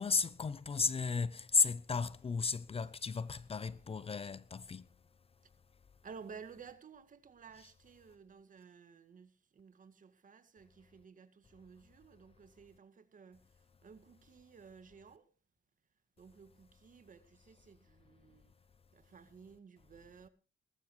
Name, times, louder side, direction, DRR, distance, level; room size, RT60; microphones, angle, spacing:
voice 1, 0.0-4.8, left 4 dB, 30° left, 0.7 m, -34 dB
voice 2, 6.0-15.3 16.2-18.5 18.9-20.3, right 6 dB, 45° right, 2.0 m, -55 dB
19.5 x 15.0 x 3.2 m
cardioid pair, 80°, 18 cm